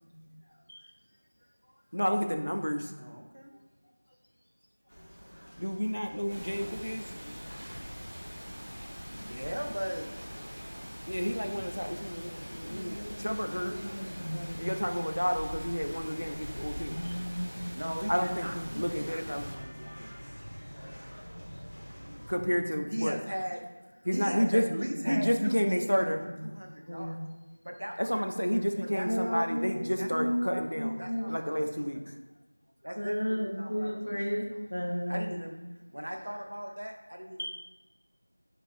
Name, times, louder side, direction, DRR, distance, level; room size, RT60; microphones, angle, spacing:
voice 1, 1.9-2.9 5.6-7.1 11.1-13.7 14.6-17.0 18.1-19.5 22.3-23.2 24.0-24.7 25.1-26.2 28.0-31.0 31.3-32.1, equal, 80° left, 5 dB, 0.5 m, -30 dB
voice 2, 3.0-3.5 9.1-10.1 17.7-20.1 22.9-23.6 24.1-26.0 26.4-27.2 27.6-28.3 28.9-29.4 30.0-31.8 32.8-34.5 35.1-35.6 35.9-37.4, equal, 35° right, 2 dB, 0.4 m, -38 dB
sound 1, 4.9-22.4, equal, 60° left, 1.2 m, -46 dB
sound 2, 6.3-19.5, equal, 20° right, 0.9 m, -44 dB
voice 3, 12.7-14.7 16.8-18.0 20.0-20.2 20.7-21.3 21.5-21.6 24.9-26.3 26.9-27.2 29.0-29.9 30.1-31.4 33.0-35.4 37.4-37.5, equal, 30° left, -2 dB, 0.7 m, -35 dB
4.6 x 3.2 x 2.5 m, 1.2 s
figure-of-eight pair, 180°, 0 cm